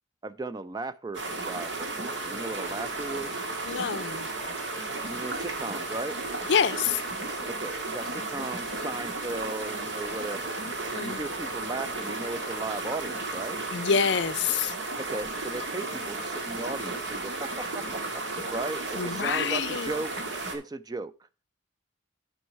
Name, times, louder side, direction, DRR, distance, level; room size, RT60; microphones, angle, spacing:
voice 1, 0.2-3.4 5.1-6.2 7.6-10.4 10.9-13.6 15.0-20.1 20.5-21.1, right 2 dB, 20° right, 0.4 m, -36 dB
sound 1, 1.1-20.6, right 2 dB, 65° right, 1.7 m, -34 dB
voice 2, 3.7-4.3 6.5-7.0 11.0-11.2 13.7-14.7 19.0-19.9, left 6 dB, 60° left, 0.5 m, -26 dB
9.5 x 5.3 x 4.5 m
head